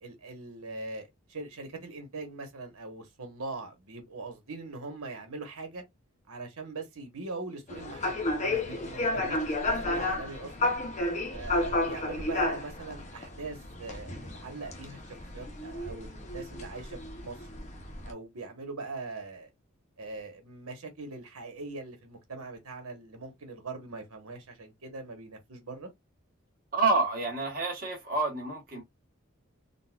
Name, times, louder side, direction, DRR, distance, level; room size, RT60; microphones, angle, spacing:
voice 1, 0.0-5.8 6.3-10.8 11.3-15.0 15.3-17.4 18.0-19.5 20.0-25.9, right 3 dB, 90° right, 1.2 m, -41 dB
sound 1, 7.7-18.1, left 2 dB, 30° left, 0.6 m, -32 dB
voice 2, 26.7-28.8, right 3 dB, 40° right, 1.3 m, -28 dB
3.9 x 2.3 x 2.3 m
head